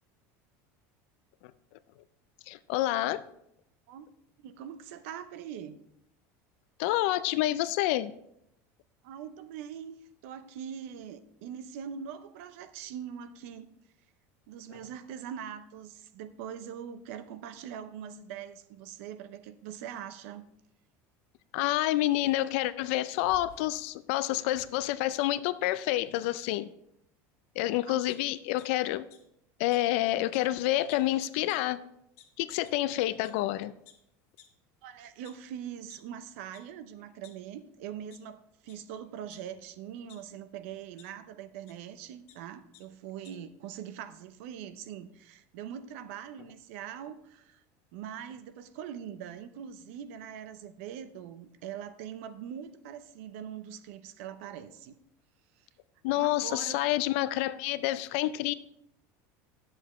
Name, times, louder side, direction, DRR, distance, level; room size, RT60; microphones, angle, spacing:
voice 1, 2.5-3.2 6.8-8.1 21.5-26.7 27.6-29.0 29.6-31.8 32.4-33.7 56.0-58.5, left 15 dB, 60° left, 15 dB, 0.4 m, -28 dB
voice 2, 4.4-5.8 9.0-10.0 10.2-13.7 14.5-20.5 27.9-28.0 34.8-47.6 47.9-55.0 55.6-55.7 56.2-56.8, right 9 dB, 70° right, 12 dB, 0.6 m, -42 dB
sound 1, 23.2-23.9 24.5-25.4, right 1 dB, 35° left, 1.5 m, -55 dB
sound 2, 28.1-28.7 29.1-29.2 29.7-29.8 30.3-30.4 30.7-31.1 31.5-31.6 32.2-32.3 32.6-32.8 33.2-33.3 33.8-33.9 34.4-34.5 35.0-36.0 36.5-36.6 37.0-37.7 38.1-38.2 38.6-38.8 39.3-40.2 41.0-41.1 41.7-41.8 42.0-42.4 42.7-42.8 43.1-43.3, left 12 dB, 80° left, 1.5 m, -56 dB
10.0 x 7.6 x 3.1 m, 0.78 s
cardioid pair, 175°, 8 cm